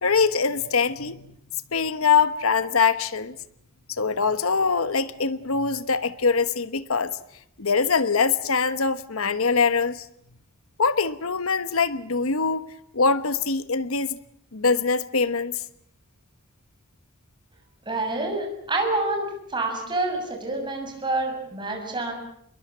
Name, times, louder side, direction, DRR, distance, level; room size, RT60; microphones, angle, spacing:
voice 1, 0.0-1.4 1.7-3.4 3.9-7.2 7.6-10.1 10.8-12.6 12.9-14.2 14.5-15.6, left 5 dB, 85° left, 1.2 m, -23 dB
voice 2, 17.9-22.1, right 2 dB, 20° right, 7.0 m, -27 dB
28.0 x 21.5 x 7.5 m
head